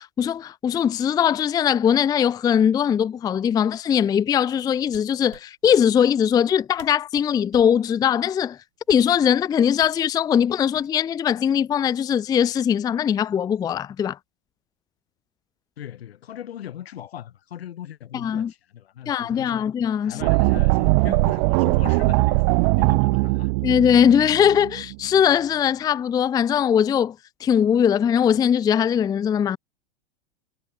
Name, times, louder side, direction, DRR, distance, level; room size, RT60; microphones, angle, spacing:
voice 1, 0.0-8.6 8.9-14.2 18.1-18.5 19.1-20.2 23.6-27.2 27.4-29.6, left 8 dB, 15° left, 0.5 m, -20 dB
sound 1, 4.8-5.8 6.5-6.6 6.8-7.8 8.8-9.2 9.8-10.0 10.7-11.2 11.5-11.8, right 13 dB, 75° right, 7.0 m, -47 dB
voice 2, 15.8-19.7 20.0-23.5, left 11 dB, 80° left, 6.7 m, -38 dB
sound 2, 20.2-25.2, right 30 dB, 45° right, 0.6 m, -20 dB
hypercardioid pair, 130°, 30 cm